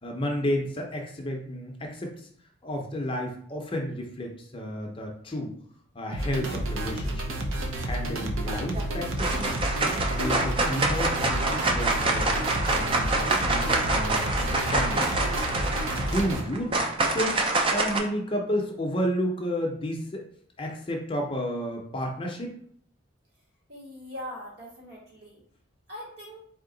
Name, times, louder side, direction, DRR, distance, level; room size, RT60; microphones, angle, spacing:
voice 1, 0.0-2.3 2.6-5.5 5.9-7.3 7.8-9.6 10.1-15.1 15.9-16.9 17.1-17.4 17.7-20.3 20.6-22.6, equal, 25° left, 1 dB, 0.6 m, -31 dB
sound 1, 6.1-16.4, right 1 dB, 90° right, 0.7 m, -31 dB
sound 2, 8.5-8.8 9.2-18.0, right 2 dB, 25° right, 0.5 m, -26 dB
voice 2, 23.7-25.4 25.9-26.4, left 1 dB, 55° right, -4 dB, 1.6 m, -41 dB
4.4 x 2.8 x 3.8 m, 0.64 s
head